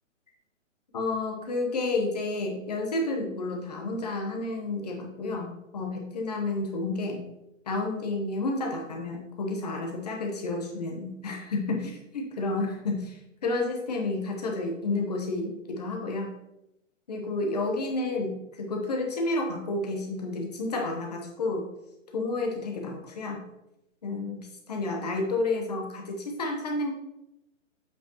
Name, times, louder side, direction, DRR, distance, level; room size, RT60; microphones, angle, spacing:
voice 1, 0.9-7.2 7.7-16.4 17.1-21.7 22.1-23.4 24.0-24.4 24.7-26.9, left 2 dB, 30° left, 1 dB, 1.0 m, -30 dB
7.9 x 5.0 x 3.0 m, 0.88 s
hypercardioid pair, 175°, 39 cm